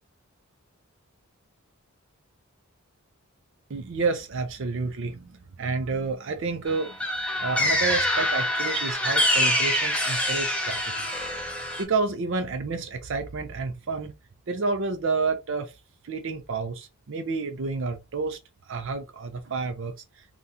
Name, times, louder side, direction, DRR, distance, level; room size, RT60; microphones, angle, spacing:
voice 1, 3.7-5.2 5.6-7.0 7.4-11.1 11.8-14.1 14.5-15.7 16.0-18.4 18.7-19.9, right 4 dB, 60° right, 0.4 m, -29 dB
sound 1, 6.7-11.8, left 1 dB, 5° left, 0.6 m, -25 dB
2.7 x 2.2 x 3.5 m
head